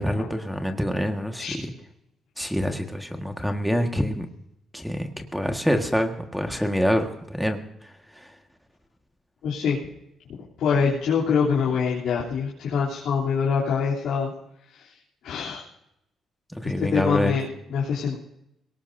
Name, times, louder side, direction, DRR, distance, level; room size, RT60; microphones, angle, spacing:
voice 1, 0.0-1.7 2.4-4.3 4.7-8.4 16.5-17.4, equal, ahead, 4 dB, 1.6 m, -26 dB
voice 2, 9.4-9.8 10.6-14.3 14.7-15.6 16.8-18.2, left 6 dB, 80° left, -7 dB, 3.2 m, -25 dB
21.5 x 18.5 x 2.7 m, 0.80 s
cardioid pair, 90°, 0 cm